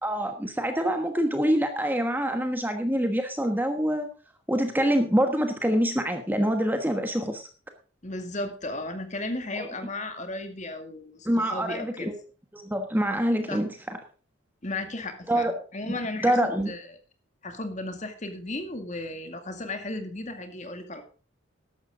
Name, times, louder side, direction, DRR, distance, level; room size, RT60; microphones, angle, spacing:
voice 1, 0.0-4.1 4.5-7.4 9.6-9.7 11.2-12.1 12.5-14.0 15.3-15.5 16.2-16.7, equal, 10° right, 6 dB, 1.2 m, -25 dB
voice 2, 8.0-12.1 13.5-13.6 14.6-16.9 17.4-21.0, left 2 dB, 35° left, 7 dB, 2.2 m, -35 dB
14.0 x 11.5 x 3.7 m, 0.37 s
head